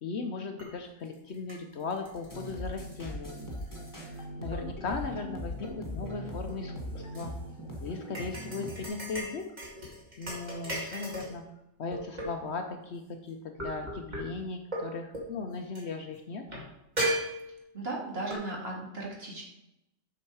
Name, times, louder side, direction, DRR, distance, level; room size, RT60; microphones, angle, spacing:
voice 1, 0.0-3.5 4.1-7.3 7.8-9.5 10.2-11.4 11.8-16.6, left 4 dB, 60° left, 5 dB, 0.9 m, -37 dB
sound 1, 0.6-0.7 1.1-4.2 4.5-5.0 5.4-7.2 8.2-11.4 11.9-12.6 13.6-14.2 14.7-14.9 15.1-15.3 15.8-15.9 16.5-16.6 17.0-17.8 18.3-18.4, right 1 dB, 30° right, 2.1 m, -37 dB
sound 2, 2.3-8.9, equal, 15° left, 1.5 m, -40 dB
voice 2, 17.7-19.4, right 2 dB, 45° right, -3 dB, 2.2 m, -36 dB
7.4 x 6.3 x 4.7 m, 0.88 s
omnidirectional pair, 1.4 m